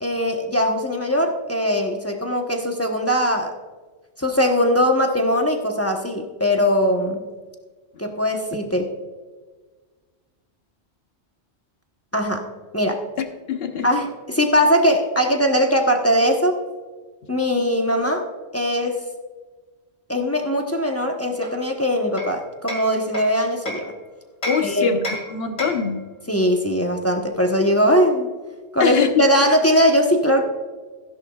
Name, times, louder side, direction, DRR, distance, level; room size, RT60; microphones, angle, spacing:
voice 1, 0.0-3.5 4.2-7.2 8.0-8.9 12.1-12.4 12.7-13.0 13.8-16.6 17.3-18.3 18.5-19.0 20.1-23.9 24.6-24.9 26.3-28.3 28.7-30.4, equal, 15° left, 2 dB, 1.0 m, -20 dB
voice 2, 13.5-13.9 24.5-26.0 28.8-29.1, left 5 dB, 60° left, 6 dB, 1.2 m, -23 dB
Hammer, 21.4-23.9 24.4-26.0, equal, 35° left, 2.3 m, -33 dB
15.5 x 10.5 x 2.4 m, 1.4 s
omnidirectional pair, 1.2 m